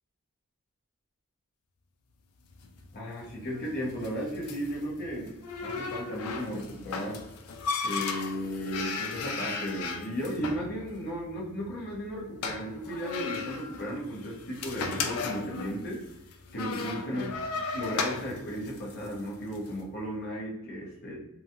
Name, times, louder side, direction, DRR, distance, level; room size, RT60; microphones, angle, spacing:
sound 1, 2.5-19.7, left 4 dB, 80° left, 0.4 m, -36 dB
voice 1, 2.9-5.3 5.6-7.2 7.8-16.0 16.5-17.2 17.7-21.2, equal, 50° left, -4 dB, 0.9 m, -35 dB
2.9 x 2.3 x 2.7 m, 0.90 s
head